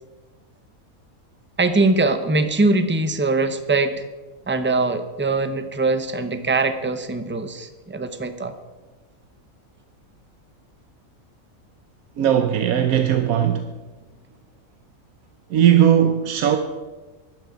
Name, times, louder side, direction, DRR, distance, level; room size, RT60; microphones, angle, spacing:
voice 1, 1.6-4.1 4.5-8.5, right 3 dB, 15° right, 9 dB, 0.4 m, -22 dB
voice 2, 12.2-13.7 15.5-16.6, right 10 dB, 85° right, 7 dB, 1.2 m, -18 dB
12.0 x 10.5 x 5.1 m, 1.2 s
omnidirectional pair, 1.4 m